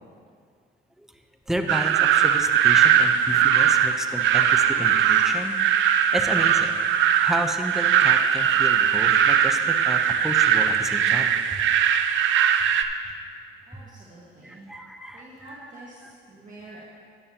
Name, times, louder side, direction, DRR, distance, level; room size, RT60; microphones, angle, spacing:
voice 1, 1.5-5.7 6.1-6.8 7.2-11.6 12.8-12.9 14.4-16.1, equal, ahead, 5 dB, 0.8 m, -32 dB
sound 1, 1.7-12.8, right 8 dB, 75° right, 0.6 m, -20 dB
voice 2, 13.7-14.7 15.1-16.0 16.3-16.8, right 2 dB, 40° right, -6 dB, 1.7 m, -46 dB
12.5 x 10.5 x 2.9 m, 2.2 s
cardioid pair, 90°, 20 cm